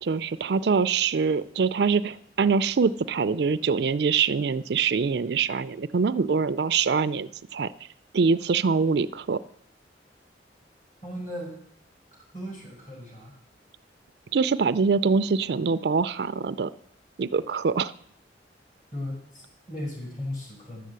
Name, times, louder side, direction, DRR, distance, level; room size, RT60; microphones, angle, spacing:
voice 1, 0.0-7.7 8.1-9.4 14.3-16.7 17.2-17.9, right 5 dB, 60° right, 14 dB, 0.4 m, -24 dB
voice 2, 11.0-11.5 12.1-13.4 18.9-20.9, left 1 dB, 45° left, -1 dB, 5.0 m, -37 dB
11.5 x 7.5 x 8.0 m, 0.65 s
head